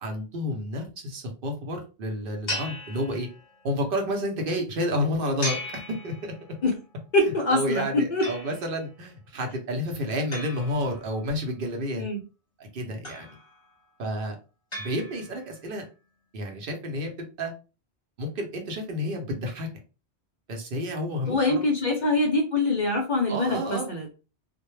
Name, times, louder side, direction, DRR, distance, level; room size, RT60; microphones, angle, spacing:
voice 1, 0.0-3.3 3.6-6.3 7.2-12.0 12.6-13.3 14.0-14.3 14.8-15.8 16.3-17.1 17.4-17.5 18.2-19.7 20.5-21.6 23.3-23.9, equal, 60° right, 3 dB, 0.8 m, -30 dB
sound 1, 2.5-3.7 5.4-6.7 8.2-8.9 10.3-11.5 13.0-13.7 14.7-15.6, left 1 dB, 30° left, 0.8 m, -37 dB
voice 2, 7.1-8.3 12.0-12.2 21.3-24.1, left 2 dB, 55° left, 2 dB, 0.5 m, -24 dB
2.1 x 2.1 x 3.0 m, 0.33 s
omnidirectional pair, 1.1 m